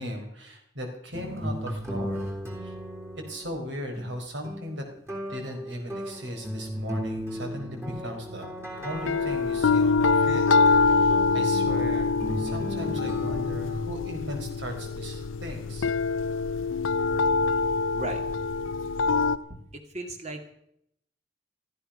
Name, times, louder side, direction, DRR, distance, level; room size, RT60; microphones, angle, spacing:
voice 1, 0.0-2.3 2.6-2.7 3.3-4.8 5.3-8.5 8.8-10.5 10.8-15.9, equal, 70° right, 4 dB, 4.3 m, -37 dB
sound 1, 1.1-3.7 3.9-4.1 4.4-13.7, equal, 15° right, 3.4 m, -36 dB
sound 2, 9.0-19.4, left 4 dB, 85° left, 0.6 m, -25 dB
voice 2, 17.1-17.5 17.9-18.7 19.5-20.5, right 2 dB, 35° right, 5 dB, 2.3 m, -39 dB
15.0 x 15.0 x 5.6 m, 0.74 s
head